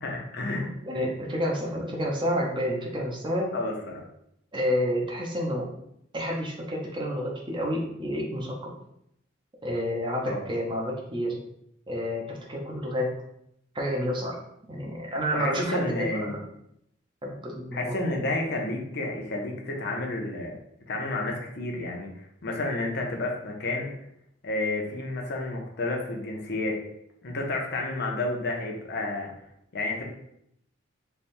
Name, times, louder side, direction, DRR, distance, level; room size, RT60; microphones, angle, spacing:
voice 1, 0.0-0.7 3.5-4.1 10.3-10.4 15.3-16.4 17.7-20.6 20.9-23.9 24.4-26.8 27.2-29.3 29.7-30.1, left 2 dB, 60° left, 1 dB, 0.8 m, -30 dB
voice 2, 0.6-3.5 4.5-5.7 6.1-8.7 9.6-11.4 11.9-13.1 13.7-14.4 14.7-16.4 17.2-18.0, equal, 25° right, -2 dB, 0.7 m, -29 dB
3.4 x 2.3 x 4.3 m, 0.76 s
head